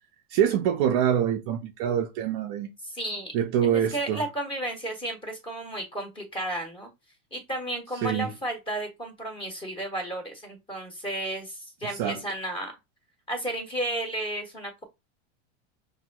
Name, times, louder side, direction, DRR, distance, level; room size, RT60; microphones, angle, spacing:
voice 1, 0.3-2.7 3.3-4.2 8.0-8.3 11.9-12.2, right 9 dB, 35° right, 0.5 m, -25 dB
voice 2, 2.8-3.3 3.6-6.9 7.3-12.7 13.3-14.8, right 1 dB, 15° left, 1.2 m, -33 dB
5.8 x 2.6 x 2.3 m
supercardioid pair, 160°, 36 cm